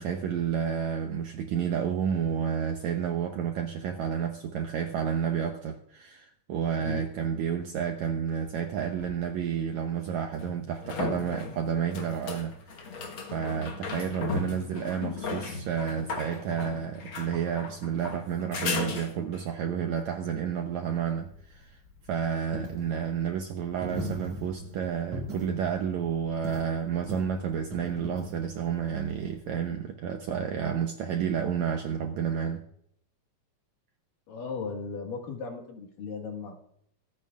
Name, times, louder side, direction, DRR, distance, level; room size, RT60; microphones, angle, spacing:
voice 1, 0.0-12.5 13.3-21.8 22.1-32.6, right 8 dB, 75° right, 4 dB, 1.7 m, -30 dB
sound 1, 9.0-9.1 10.4-19.5 22.9-23.0, left 4 dB, 55° left, 1.4 m, -36 dB
Coin (dropping), 21.2-29.7, equal, 50° right, 5.8 m, -41 dB
voice 2, 34.3-36.5, left 5 dB, 70° left, 3 dB, 3.3 m, -36 dB
24.5 x 9.0 x 2.4 m, 0.70 s
omnidirectional pair, 4.1 m